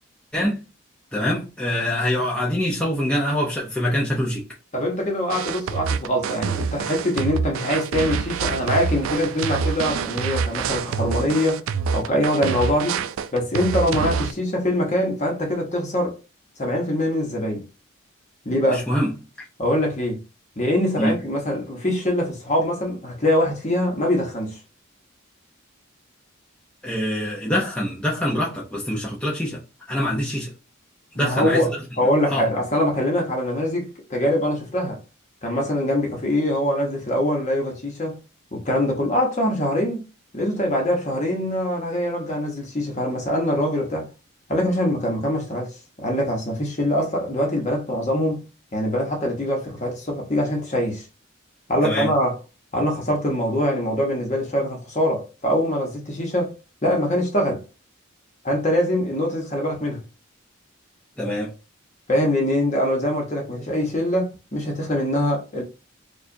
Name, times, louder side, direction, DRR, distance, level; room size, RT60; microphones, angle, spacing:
voice 1, 1.1-4.4 18.7-19.1 19.4-19.5 21.0-21.1 26.8-29.6 29.9-30.5 31.1-31.6 32.3-32.5 51.8-52.1 61.2-61.5, equal, 5° left, 0.6 m, -24 dB
voice 2, 4.7-11.6 11.9-13.0 13.3-16.1 16.6-17.7 18.4-18.8 19.6-20.2 20.6-24.6 31.1-35.0 35.4-38.2 38.5-40.0 40.3-44.1 44.5-48.4 48.7-51.1 51.7-52.4 52.7-56.5 56.8-57.6 58.4-60.0 62.1-65.6, left 1 dB, 35° left, 1.0 m, -23 dB
sound 1, 5.3-14.3, right 6 dB, 80° right, 0.3 m, -26 dB
4.7 x 2.4 x 2.6 m
head